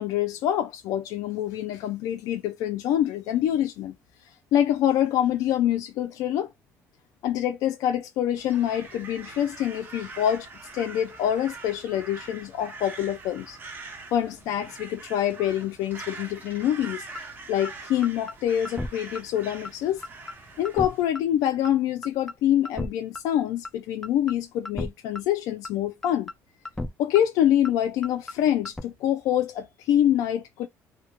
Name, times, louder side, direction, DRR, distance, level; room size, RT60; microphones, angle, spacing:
voice 1, 0.0-3.9 4.5-6.5 7.2-10.5 10.7-13.6 14.1-17.0 17.5-20.0 20.6-26.3 27.0-30.7, left 11 dB, 80° left, 0.4 m, -25 dB
Crow, 8.4-21.0, right 3 dB, 30° right, 0.7 m, -43 dB
sound 1, 17.1-17.2 17.6-17.7 18.0-18.3 18.6-18.9 19.1-19.2 19.6-19.7 20.0-20.3 20.6-20.9 21.1-21.2 21.6-21.7 22.0-22.3 22.6-22.9 23.1-23.2 23.6-23.7 24.0-24.3 24.6-24.9 25.1-25.2 25.6-25.7 26.0-26.3 26.6-26.9 27.1-27.2 27.6-27.7 28.0-28.3 28.6-28.8, left 2 dB, 5° left, 0.4 m, -33 dB
2.2 x 2.1 x 2.9 m
cardioid pair, 130°, 6 cm